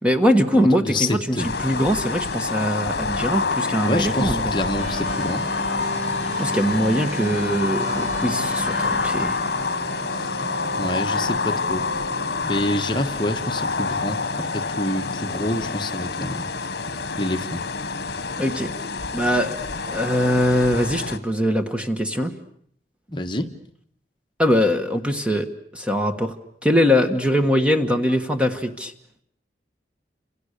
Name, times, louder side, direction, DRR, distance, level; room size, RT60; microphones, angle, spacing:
voice 1, 0.0-4.5 6.4-9.4 18.4-18.7 19.1-19.6 19.8-22.3 24.4-25.5 25.7-26.3 26.6-28.9, equal, 5° right, 6 dB, 1.4 m, -22 dB
voice 2, 0.5-1.5 3.8-5.4 10.8-11.8 12.4-16.4 17.2-17.6 23.1-23.5, left 1 dB, 25° left, 5 dB, 1.4 m, -27 dB
sound 1, 1.4-21.2, left 4 dB, 65° left, 1.3 m, -27 dB
sound 2, 4.8-14.1, right 2 dB, 50° right, 1.4 m, -35 dB
30.0 x 27.0 x 6.8 m, 0.66 s
head